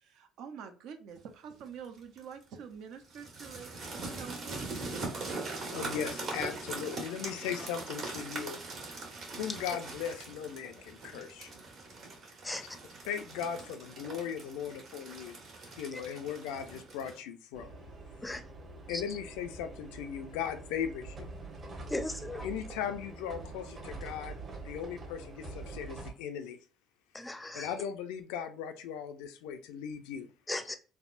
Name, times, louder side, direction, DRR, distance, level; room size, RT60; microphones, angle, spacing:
voice 1, 0.0-4.7, right 7 dB, 75° right, 0.5 m, -47 dB
sound 1, 1.8-2.2 3.1-17.2, right 3 dB, 55° right, 1.4 m, -42 dB
voice 2, 5.7-8.6 9.4-11.5 13.1-15.4 15.8-17.8 18.9-21.3 22.4-26.6 27.5-30.3, left 8 dB, 90° left, 0.4 m, -38 dB
sound 2, 17.5-26.1, right 3 dB, 40° right, 1.0 m, -45 dB
voice 3, 21.9-22.5 27.1-27.7 30.5-30.8, left 2 dB, 10° left, 0.5 m, -37 dB
3.5 x 2.0 x 2.4 m
supercardioid pair, 85°, 0 cm